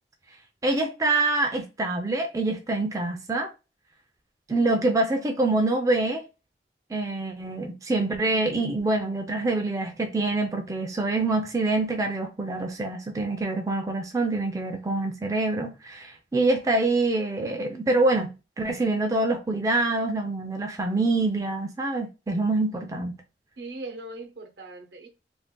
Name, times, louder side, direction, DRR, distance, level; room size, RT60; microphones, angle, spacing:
voice 1, 0.6-3.5 4.5-6.2 6.9-23.2, right 2 dB, 20° right, 0.3 m, -25 dB
voice 2, 23.6-25.1, right 2 dB, 75° right, 0.8 m, -39 dB
2.6 x 2.4 x 3.6 m
head